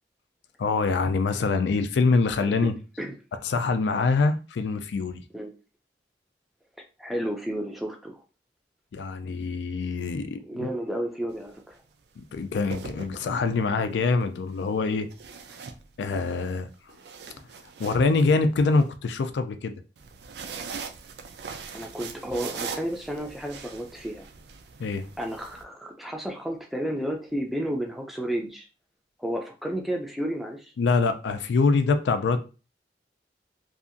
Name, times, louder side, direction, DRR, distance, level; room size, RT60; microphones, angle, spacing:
voice 1, 0.6-2.7 3.4-5.2 8.9-10.7 12.2-15.1 16.0-17.0 17.8-19.7 24.8-25.1 30.8-32.4, left 4 dB, 80° left, 0.4 m, -24 dB
voice 2, 7.0-8.2 10.5-11.8 21.7-24.3 25.2-28.7 29.2-30.7, right 1 dB, ahead, 0.4 m, -32 dB
sound 1, 11.3-11.6 12.5-13.6 15.1-16.3 16.7-18.8 20.0-25.6, right 5 dB, 70° right, 0.4 m, -41 dB
2.7 x 2.4 x 2.5 m
head